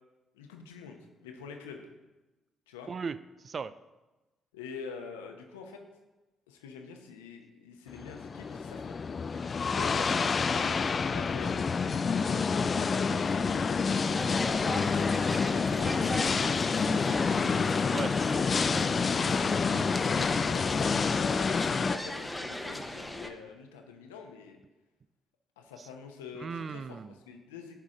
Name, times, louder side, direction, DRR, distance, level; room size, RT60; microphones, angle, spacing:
voice 1, 0.3-1.8 2.7-2.9 4.5-5.8 6.5-9.0 9.7-12.2 12.9-14.8 15.2-17.3 20.1-24.6 25.6-27.0 27.3-27.8, left 5 dB, 85° left, 3 dB, 0.8 m, -45 dB
voice 2, 2.9-3.2 3.4-3.7 17.9-19.0 25.8-25.9 26.4-27.2, right 5 dB, 45° right, 15 dB, 0.3 m, -38 dB
sound 1, 7.9-22.0, left 5 dB, 45° left, 0.3 m, -28 dB
sound 2, 14.1-23.3, left 1 dB, 10° left, 0.8 m, -38 dB
9.9 x 4.9 x 3.8 m, 1.1 s
hypercardioid pair, 45°, 0 cm